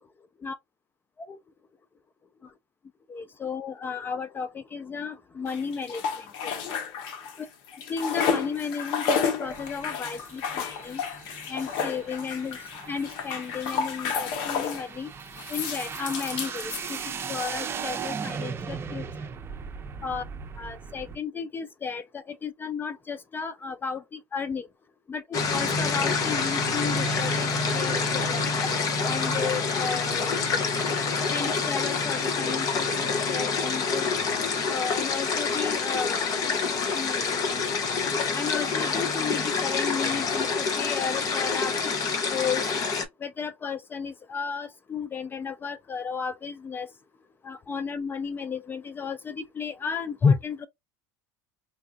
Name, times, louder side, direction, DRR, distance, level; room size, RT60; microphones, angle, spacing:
voice 1, 3.1-6.3 6.6-6.7 7.4-7.5 7.9-11.0 11.5-12.6 12.9-15.1 15.5-17.0 17.3-19.0 20.0-20.2 20.6-24.0 24.3-24.7 25.1-28.5 29.0-30.3 31.3-34.1 34.7-36.3 36.9-37.2 38.4-41.7 42.3-42.6 43.2-46.9 47.4-50.7, left 6 dB, 25° left, 0.4 m, -33 dB
sound 1, 5.5-7.4 7.7-14.9 15.4-17.4, left 6 dB, 65° left, 1.0 m, -31 dB
sound 2, 9.4-21.2, right 6 dB, 30° right, 0.8 m, -38 dB
sound 3, 25.3-43.1, left 4 dB, 45° left, 1.1 m, -27 dB
4.5 x 2.4 x 2.3 m
supercardioid pair, 110°, 9 cm